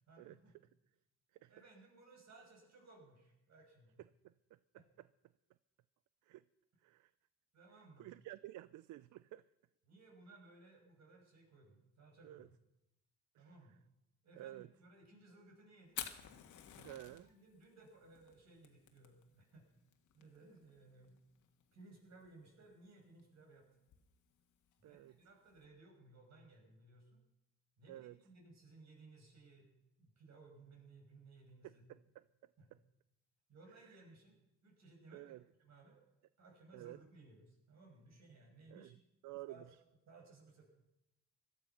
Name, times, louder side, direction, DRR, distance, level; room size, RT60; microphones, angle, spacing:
voice 1, 0.1-0.5 1.5-4.0 4.7-4.8 7.5-8.1 9.9-12.5 13.4-13.8 14.2-16.0 17.1-19.7 20.1-21.2 21.7-23.7 24.8-27.2 27.8-29.7 30.0-32.0 32.6-32.7 33.5-34.4 34.6-36.0 36.4-38.9 39.5-39.7 40.1-40.7, right 3 dB, 60° right, 1 dB, 5.9 m, -61 dB
voice 2, 8.0-9.4 12.2-12.5 13.4-13.5 14.4-14.7 16.8-17.3 24.8-25.1 27.9-28.2 31.6-32.2 32.7-32.8 35.1-35.4 36.7-37.0 38.7-39.0 39.2-39.6, right 15 dB, 80° right, 17 dB, 0.5 m, -51 dB
Fire, 15.8-25.6, left 10 dB, 80° left, 1.6 m, -53 dB
17.5 x 12.0 x 5.8 m, 0.92 s
cardioid pair, 90°, 30 cm